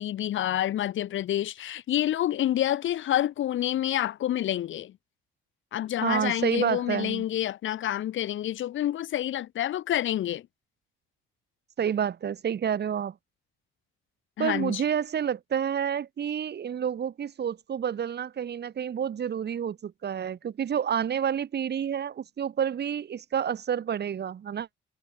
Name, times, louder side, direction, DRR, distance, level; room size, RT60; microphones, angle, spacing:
voice 1, 0.0-4.9 5.7-10.4 14.4-14.8, left 12 dB, 75° left, 5.4 m, -28 dB
voice 2, 6.0-7.2 11.8-13.1 14.4-24.8, right 8 dB, 55° right, 5.9 m, -29 dB
cardioid pair, 90°, 20 cm